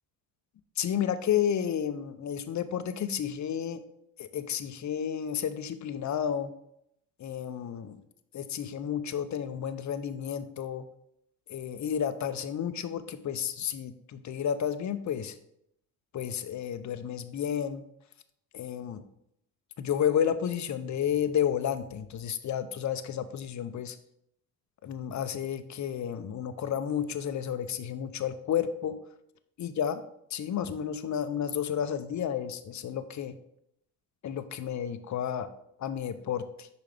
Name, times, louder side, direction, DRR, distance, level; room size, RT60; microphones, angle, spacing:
voice 1, 0.8-3.8 4.2-6.5 7.2-8.0 8.3-10.8 11.5-15.3 16.1-17.8 18.5-19.0 19.8-24.0 24.8-29.0 29.6-30.0 30.3-33.3 34.2-35.5 35.8-36.7, left 9 dB, 35° left, 11 dB, 0.7 m, -31 dB
6.7 x 4.9 x 3.4 m, 0.75 s
hypercardioid pair, 60°, 49 cm